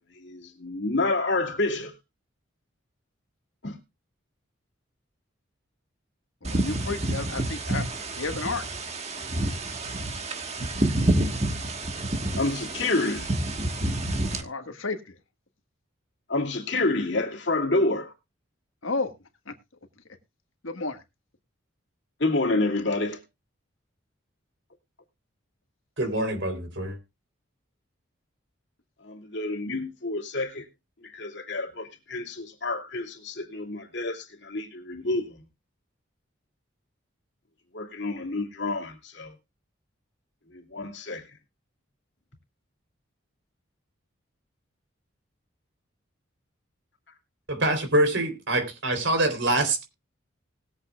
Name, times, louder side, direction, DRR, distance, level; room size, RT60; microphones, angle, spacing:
voice 1, 0.2-1.9 3.6-3.8 12.3-13.3 16.3-18.1 22.2-23.2 29.0-30.7 31.0-35.4 37.7-39.3 40.5-41.2, left 2 dB, 60° left, 2.7 m, -28 dB
voice 2, 6.4-7.9 8.1-8.6 14.3-15.2 18.8-19.1 19.5-19.6 20.6-21.0, left 3 dB, 85° left, 1.7 m, -32 dB
sound 1, 6.4-14.4, right 1 dB, 35° right, 1.5 m, -28 dB
voice 3, 26.0-27.0 47.5-49.8, right 1 dB, 65° right, 3.8 m, -25 dB
20.0 x 8.1 x 2.4 m
head